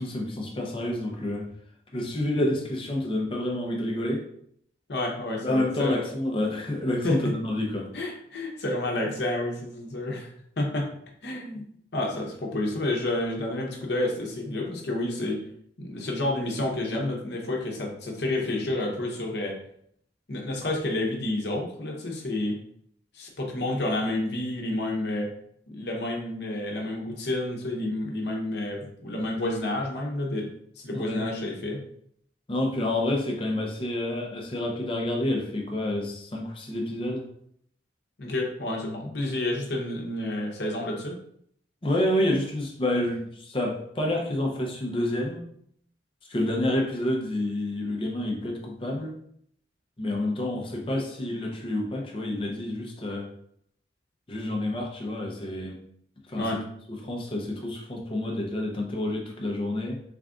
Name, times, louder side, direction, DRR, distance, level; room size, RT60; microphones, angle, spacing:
voice 1, 0.0-1.5 1.9-4.3 5.4-7.9 30.9-31.2 32.5-37.3 41.8-45.4 46.3-49.2 50.0-53.3 54.3-55.8 56.3-56.4 56.9-60.0, left 1 dB, 30° left, 0 dB, 0.6 m, -28 dB
voice 2, 4.9-6.0 7.0-7.3 7.9-10.3 10.6-10.9 11.2-11.6 11.9-15.4 15.8-19.6 20.3-22.6 23.1-25.3 25.7-30.5 30.8-31.8 38.2-41.2 56.4-56.6, left 1 dB, 65° left, 0 dB, 0.8 m, -29 dB
3.4 x 2.4 x 3.6 m, 0.67 s
head